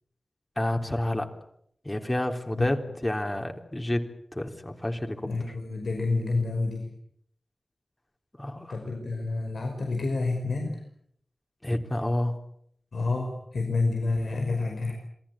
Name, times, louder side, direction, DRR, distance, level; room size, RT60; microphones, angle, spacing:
voice 1, 0.5-1.3 1.8-5.3 8.4-8.8 11.6-12.4, left 1 dB, 20° left, 4 dB, 3.4 m, -29 dB
voice 2, 5.3-6.9 8.7-10.8 12.9-14.9, left 3 dB, 85° left, 2 dB, 5.4 m, -29 dB
27.5 x 20.5 x 8.7 m, 0.69 s
wide cardioid pair, 80°, 0 cm